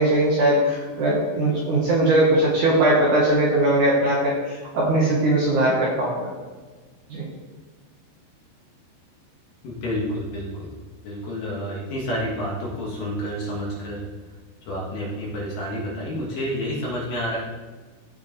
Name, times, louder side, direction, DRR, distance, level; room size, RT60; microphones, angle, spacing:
voice 1, 0.0-6.3 7.1-7.3, right 1 dB, 60° right, -5 dB, 2.2 m, -20 dB
voice 2, 9.6-10.7 11.0-14.1 14.6-17.4, equal, 60° left, -4 dB, 3.0 m, -29 dB
14.5 x 4.9 x 3.3 m, 1.3 s
omnidirectional pair, 4.8 m